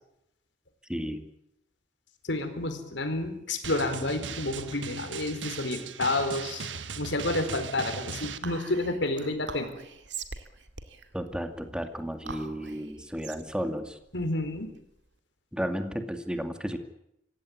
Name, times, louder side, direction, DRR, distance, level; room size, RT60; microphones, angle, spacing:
voice 1, 0.9-1.3 11.1-14.0 15.5-16.8, equal, 5° right, 6 dB, 2.2 m, -33 dB
voice 2, 2.2-6.7 7.0-9.7 14.1-14.7, left 2 dB, 75° left, 7 dB, 4.4 m, -30 dB
Drum, 3.6-8.4, right 5 dB, 90° right, 1.5 m, -38 dB
Whispering, 8.4-15.1, right 5 dB, 70° right, 2.2 m, -43 dB
26.0 x 16.0 x 9.7 m, 0.82 s
head